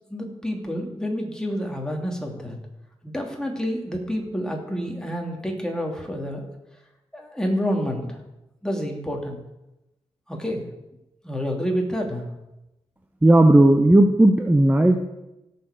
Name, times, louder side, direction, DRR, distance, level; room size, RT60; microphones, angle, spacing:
voice 1, 0.1-2.6 3.0-6.5 7.1-8.2 8.6-9.4 10.3-10.7 11.2-12.3, equal, 5° left, 1 dB, 2.6 m, -28 dB
voice 2, 13.2-15.0, right 1 dB, 15° right, 5 dB, 0.9 m, -15 dB
16.5 x 7.0 x 5.0 m, 0.95 s
cardioid pair, 75°, 11 cm